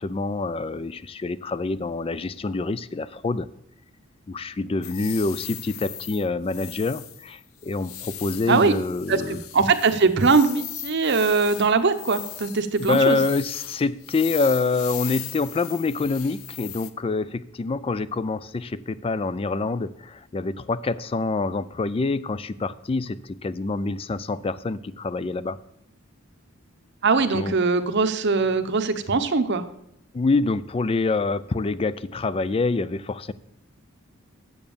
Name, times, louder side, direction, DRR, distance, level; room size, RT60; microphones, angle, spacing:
voice 1, 0.0-3.5 4.3-9.4 12.8-25.6 27.3-27.5 30.1-33.3, left 3 dB, 25° left, 16 dB, 0.3 m, -26 dB
sound 1, 4.8-16.9, left 11 dB, 80° left, 0.7 m, -38 dB
voice 2, 9.1-13.2 27.0-29.7, right 4 dB, 55° right, 9 dB, 0.8 m, -21 dB
7.9 x 7.1 x 7.1 m, 0.78 s
head